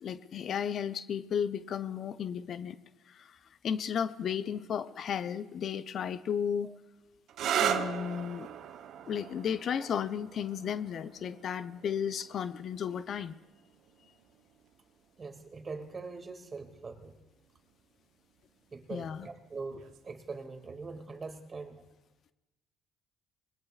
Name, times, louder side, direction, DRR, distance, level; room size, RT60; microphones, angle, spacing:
voice 1, 0.0-2.8 3.1-3.4 3.6-6.7 7.6-8.5 9.1-13.4 18.9-19.3, left 8 dB, 55° left, 13 dB, 0.6 m, -34 dB
sound 1, 7.3-14.7 15.7-16.3 19.8-20.1, right 9 dB, 65° right, 0.8 m, -37 dB
voice 2, 15.2-17.2 18.7-21.8, right 4 dB, 35° right, 6 dB, 2.0 m, -42 dB
20.5 x 20.0 x 2.4 m, 1.1 s
supercardioid pair, 65°, 0 cm